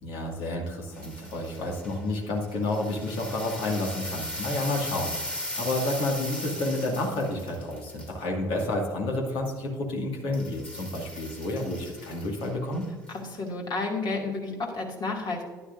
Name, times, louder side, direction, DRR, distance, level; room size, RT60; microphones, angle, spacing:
voice 1, 0.0-12.9, left 2 dB, 60° left, 0 dB, 2.3 m, -30 dB
sound 1, 0.9-2.0 2.5-8.1 10.3-13.2 13.5-13.6, left 1 dB, 10° left, 2.3 m, -38 dB
voice 2, 13.1-15.4, left 3 dB, 45° left, 0 dB, 2.5 m, -31 dB
11.5 x 10.5 x 2.7 m, 1.5 s
figure-of-eight pair, 55°, 10 cm